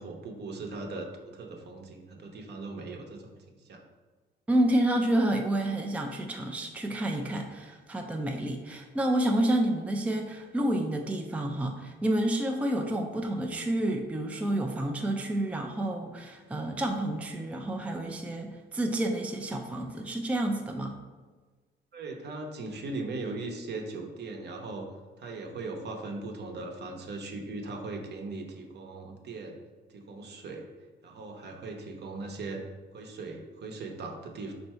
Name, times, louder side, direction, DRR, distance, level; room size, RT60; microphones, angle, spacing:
voice 1, 0.0-3.8 21.9-24.9 25.2-29.6 29.9-30.7 31.0-32.6 32.9-34.5, right 3 dB, 55° right, 2 dB, 0.8 m, -39 dB
voice 2, 4.5-21.0, right 1 dB, 5° right, 3 dB, 0.4 m, -29 dB
4.5 x 2.6 x 4.3 m, 1.4 s
cardioid pair, 90°, 20 cm